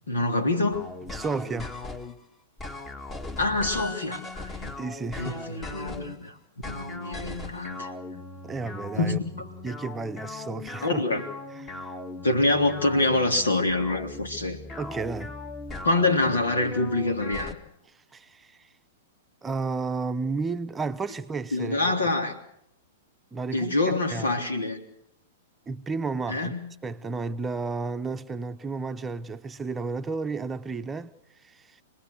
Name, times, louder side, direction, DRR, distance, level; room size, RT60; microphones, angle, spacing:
voice 1, 0.1-0.8 3.4-4.7 5.2-6.3 6.6-7.9 9.0-9.5 10.8-11.2 12.2-14.6 15.8-17.6 21.5-22.3 23.5-24.8 26.3-26.7, left 2 dB, 80° left, 3.3 m, -26 dB
sound 1, 0.7-2.2 2.6-6.2 6.6-17.5, left 2 dB, 20° left, 1.9 m, -39 dB
voice 2, 1.1-1.8 4.8-5.4 8.4-9.2 9.6-11.0 11.6-11.9 14.8-15.3 18.1-18.7 19.4-21.9 23.3-24.4 25.7-26.5 26.8-31.1 31.4-31.8, right 4 dB, 15° right, 0.8 m, -32 dB
26.5 x 20.0 x 6.6 m
hypercardioid pair, 110°, 0 cm